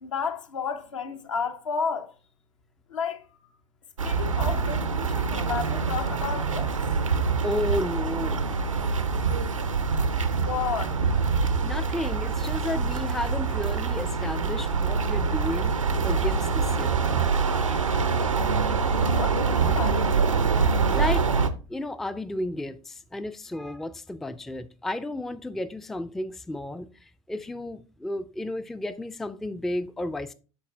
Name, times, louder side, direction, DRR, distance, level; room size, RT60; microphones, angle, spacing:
voice 1, 0.0-2.1 2.9-3.5 4.0-6.8 10.4-11.0 19.2-20.2, left 6 dB, 75° left, 0.8 m, -32 dB
sound 1, 4.0-21.5, right 5 dB, 85° right, 0.5 m, -25 dB
voice 2, 7.4-8.5 11.6-15.7 16.0-17.0 17.7-17.9 20.9-21.3 21.7-30.3, left 1 dB, ahead, 0.3 m, -32 dB
11.5 x 4.1 x 2.4 m
figure-of-eight pair, 75°, 16 cm